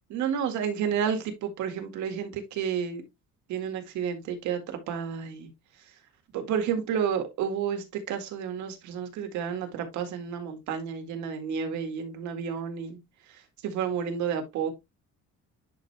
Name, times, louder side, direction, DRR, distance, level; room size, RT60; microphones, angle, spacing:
voice 1, 0.1-3.0 3.5-5.5 6.3-13.0 13.6-14.7, right 7 dB, 75° right, 1.9 m, -31 dB
10.5 x 5.0 x 2.2 m
cardioid pair, 175°, 29 cm